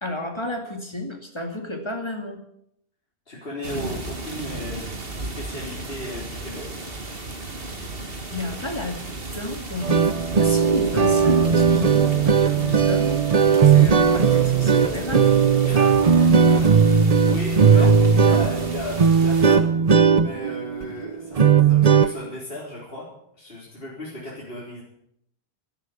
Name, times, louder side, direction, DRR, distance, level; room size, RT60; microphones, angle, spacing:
voice 1, 0.0-2.4 8.3-9.0 9.3-10.0 10.4-15.3 17.7-17.9, left 2 dB, 25° left, 3 dB, 2.4 m, -31 dB
voice 2, 3.3-4.9 5.2-6.8 15.6-19.6 20.1-23.1 23.3-24.8, left 1 dB, 60° left, -5 dB, 4.3 m, -36 dB
sound 1, 3.6-19.6, right 2 dB, 60° right, 2.3 m, -35 dB
sound 2, 9.8-22.1, right 6 dB, 40° right, 0.8 m, -17 dB
13.0 x 12.5 x 8.5 m, 0.74 s
omnidirectional pair, 1.1 m